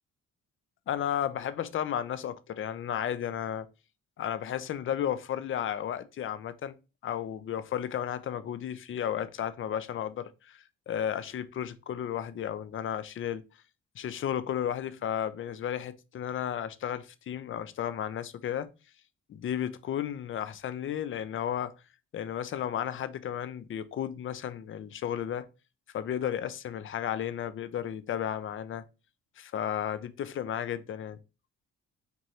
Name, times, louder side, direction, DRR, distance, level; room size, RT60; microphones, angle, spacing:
voice 1, 0.9-3.7 4.2-6.7 7.0-13.4 14.0-18.7 19.3-21.7 22.1-25.5 25.9-28.8 29.4-31.2, left 10 dB, 45° left, 0.5 m, -33 dB
4.6 x 2.6 x 2.8 m
cardioid pair, 90°, 30 cm